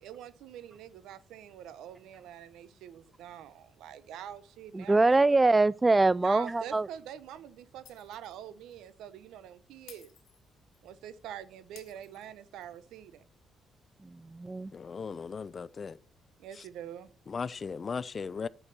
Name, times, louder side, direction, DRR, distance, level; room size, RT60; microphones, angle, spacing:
voice 1, 0.0-5.2 6.2-10.1 10.8-13.2 16.4-17.1, right 10 dB, 85° right, 0.8 m, -45 dB
voice 2, 4.7-6.9 14.0-14.7, right 2 dB, 20° right, 0.3 m, -24 dB
Shatter, 7.9-8.4 8.7-8.9 9.9-10.9 11.8-12.8, left 10 dB, 75° left, 1.2 m, -56 dB
voice 3, 14.7-16.0 16.6-16.7 17.3-18.5, left 5 dB, 40° left, 0.5 m, -37 dB
8.7 x 6.4 x 6.7 m
cardioid pair, 90°, 0 cm